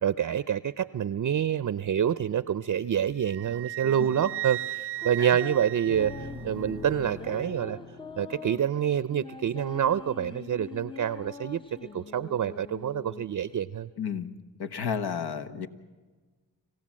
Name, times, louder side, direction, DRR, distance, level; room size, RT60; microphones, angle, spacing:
voice 1, 0.0-7.8 8.2-11.6 11.9-13.9, right 9 dB, 45° right, 16 dB, 0.6 m, -27 dB
Wind instrument woodwind instrument, 3.3-6.8, right 16 dB, 90° right, 0.8 m, -36 dB
sound 1, 3.8-13.6, left 3 dB, 15° left, 0.7 m, -44 dB
sound 2, 5.9-10.3, left 2 dB, 55° left, 2.2 m, -44 dB
voice 2, 14.0-14.3 14.6-15.7, left 7 dB, 70° left, 9 dB, 1.3 m, -32 dB
26.5 x 15.5 x 7.5 m, 1.4 s
supercardioid pair, 45°, 40 cm